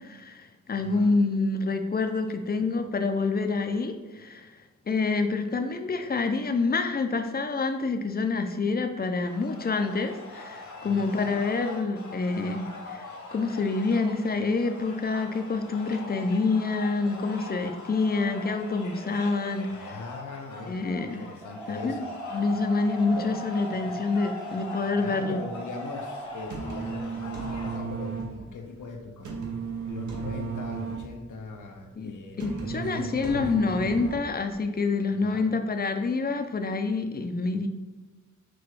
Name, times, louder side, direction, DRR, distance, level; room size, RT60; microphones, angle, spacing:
voice 1, 0.0-4.5 4.9-20.0 20.7-21.2 21.7-22.0 22.3-25.4 32.0-37.7, left 3 dB, 30° left, 6 dB, 0.4 m, -27 dB
voice 2, 0.8-1.1 2.3-2.4 10.8-11.4 19.7-20.8 21.2-22.1 23.2-23.3 25.0-29.3 29.8-33.4 35.2-35.5, left 3 dB, 85° left, 4 dB, 0.6 m, -41 dB
sound 1, 9.2-27.8, left 3 dB, 70° left, 0.9 m, -43 dB
sound 2, 21.4-26.4, equal, 10° right, 0.6 m, -39 dB
sound 3, 26.3-34.5, right 5 dB, 70° right, 0.8 m, -35 dB
5.9 x 2.3 x 3.1 m, 1.2 s
wide cardioid pair, 75°, 30 cm